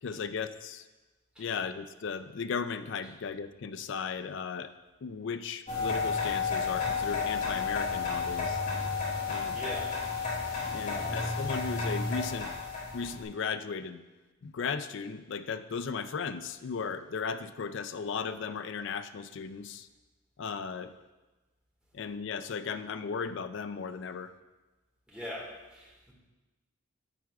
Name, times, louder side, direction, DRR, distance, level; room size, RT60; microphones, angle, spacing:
voice 1, 0.0-0.8 1.4-4.7 5.0-8.6 9.3-9.6 10.7-12.5 12.9-14.0 14.4-19.9 20.4-20.9 21.9-24.3, left 5 dB, 55° left, 11 dB, 0.4 m, -36 dB
sound 1, 5.7-13.1, left 5 dB, 35° left, 2.3 m, -32 dB
voice 2, 9.2-10.0 10.8-11.3 25.1-26.1, equal, 5° right, -4 dB, 1.7 m, -42 dB
10.5 x 7.5 x 2.3 m, 1.2 s
head